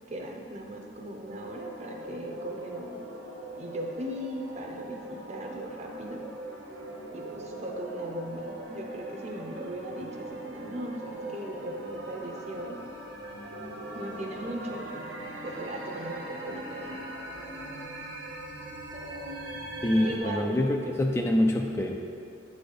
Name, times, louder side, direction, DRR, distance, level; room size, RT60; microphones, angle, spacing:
voice 1, 0.1-3.0 3.5-6.2 7.1-12.8 13.9-14.9 15.4-17.0 18.9-19.6 20.0-20.9, right 1 dB, 40° right, 1 dB, 0.8 m, -38 dB
sound 1, 1.2-20.2, right 1 dB, 85° right, 0.9 m, -40 dB
voice 2, 19.8-22.0, left 1 dB, 15° left, 1 dB, 0.3 m, -25 dB
7.6 x 4.2 x 5.0 m, 2.4 s
head